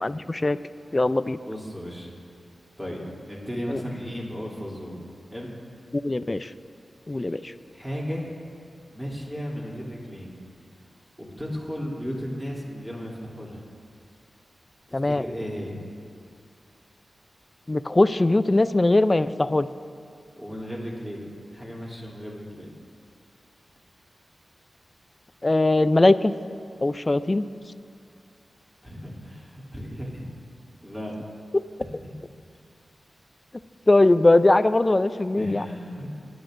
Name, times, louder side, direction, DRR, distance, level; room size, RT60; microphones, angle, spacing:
voice 1, 0.0-0.6 0.9-1.4 3.7-3.8 5.9-6.5 7.1-7.5 14.9-15.2 17.7-19.7 25.4-26.3 26.8-27.5 31.5-31.6 33.9-35.6, left 2 dB, 30° left, 13 dB, 0.4 m, -20 dB
voice 2, 1.4-2.1 2.8-4.9 5.3-5.5 7.1-7.3 7.7-8.3 8.9-10.3 11.2-13.6 14.9-15.8 20.4-21.2 21.5-22.7 28.8-30.3 30.8-31.1 35.4-36.1, equal, 5° right, -5 dB, 3.0 m, -35 dB
21.5 x 11.0 x 2.6 m, 2.4 s
wide cardioid pair, 75°, 0 cm